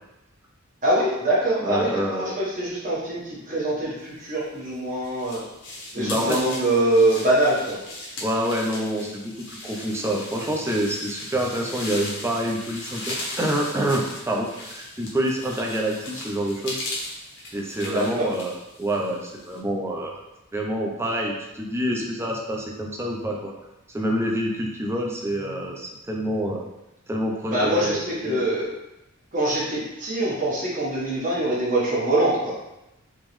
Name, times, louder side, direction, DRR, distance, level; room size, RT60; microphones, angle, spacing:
voice 1, 0.8-5.4 5.9-7.8 17.8-18.3 27.4-28.7 29.3-32.5, right 1 dB, 40° right, -6 dB, 1.1 m, -24 dB
voice 2, 1.6-2.4 6.0-6.4 8.2-16.8 17.5-20.2 20.5-23.5 23.9-26.6 27.1-28.4, right 1 dB, 10° right, -1 dB, 0.5 m, -27 dB
sound 1, 4.4-19.6, left 1 dB, 55° left, 0.9 m, -37 dB
3.6 x 3.0 x 3.1 m, 0.91 s
head